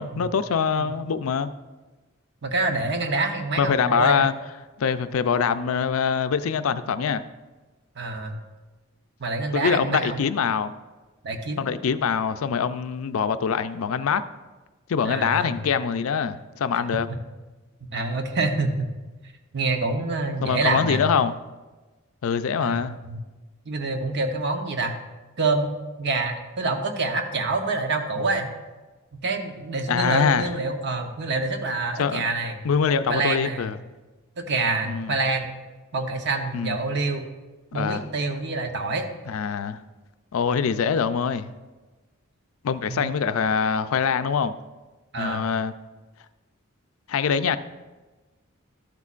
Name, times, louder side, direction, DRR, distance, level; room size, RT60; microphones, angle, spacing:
voice 1, 0.0-1.5 3.6-4.3 4.8-7.2 9.5-10.7 11.6-14.2 14.9-17.1 20.4-21.3 22.2-23.0 29.9-30.5 32.0-32.2 32.6-33.8 34.8-35.2 36.5-36.8 37.7-38.0 39.3-39.8 40.3-41.5 42.6-44.5 45.2-45.7 47.1-47.6, left 6 dB, 80° left, 12 dB, 0.4 m, -24 dB
voice 2, 2.4-4.2 8.0-8.4 9.2-10.2 11.2-11.7 15.0-15.6 17.1-17.2 17.9-18.9 19.5-21.1 22.6-23.2 23.7-25.0 25.4-25.7 26.0-28.5 29.1-32.6 33.1-33.7 34.4-35.5 35.9-37.2 37.7-39.1 42.8-43.1 45.1-45.4, right 3 dB, 55° right, 5 dB, 0.9 m, -26 dB
12.5 x 8.2 x 2.5 m, 1.2 s
head